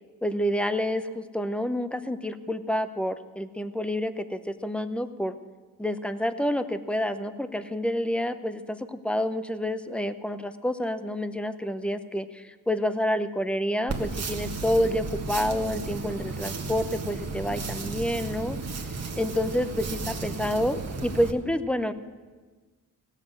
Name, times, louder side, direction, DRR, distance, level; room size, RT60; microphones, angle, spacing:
voice 1, 0.2-5.4 5.8-18.6 19.2-21.9, left 1 dB, 5° left, 11 dB, 0.7 m, -28 dB
sound 1, 13.9-21.3, right 4 dB, 45° right, 1.6 m, -34 dB
17.0 x 7.4 x 7.7 m, 1.4 s
cardioid pair, 80°, 36 cm